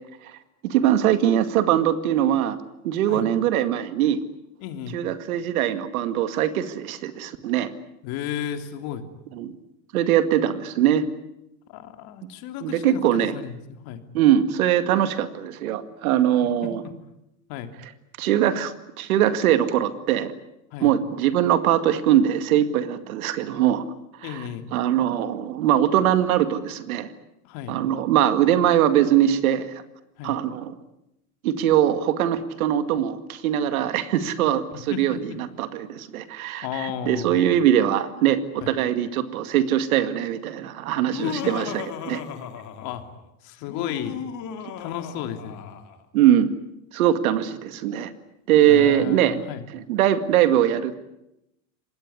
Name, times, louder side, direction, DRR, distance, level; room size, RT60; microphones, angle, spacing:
voice 1, 0.6-2.6 2.8-4.2 4.9-7.7 9.4-9.5 9.9-11.0 12.2-12.3 12.6-13.3 14.1-16.8 18.2-20.3 20.8-23.8 24.2-24.4 24.7-27.1 27.7-29.8 30.2-30.7 31.4-42.2 46.1-46.5 46.9-48.1 48.5-49.4 49.7-51.0, right 11 dB, 85° right, 11 dB, 2.2 m, -22 dB
voice 2, 4.6-5.0 8.0-9.0 11.7-14.0 16.6-16.7 17.5-17.7 20.7-20.9 24.2-24.7 27.4-27.8 30.2-30.4 34.7-35.4 36.6-37.6 38.6-38.7 41.2-41.5 42.8-43.0 43.4-44.2 44.8-45.6 48.7-49.6, left 9 dB, 60° left, 7 dB, 3.2 m, -34 dB
Laughter, 41.0-43.1 43.6-46.0, left 8 dB, 45° left, 3.2 m, -35 dB
25.5 x 20.0 x 9.7 m, 0.85 s
supercardioid pair, 115°, 42 cm